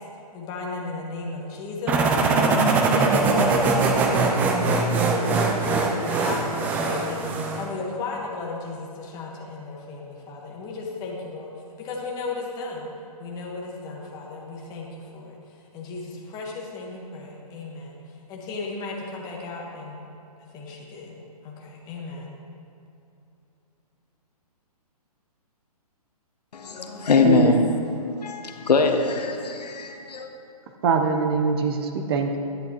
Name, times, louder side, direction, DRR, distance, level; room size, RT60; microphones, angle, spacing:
voice 1, 0.3-2.5 2.9-11.5 11.8-12.9 13.2-15.4 15.7-18.0 18.3-20.1 20.4-22.4, left 3 dB, 20° left, 1.4 m, -35 dB
sound 1, 1.9-7.7, right 3 dB, 10° right, 0.3 m, -22 dB
voice 2, 26.5-27.6 28.2-30.3, left 4 dB, 90° left, 1.0 m, -22 dB
voice 3, 30.8-32.4, right 5 dB, 40° right, 0.8 m, -23 dB
10.5 x 10.5 x 3.0 m
hypercardioid pair, 155°, 20 cm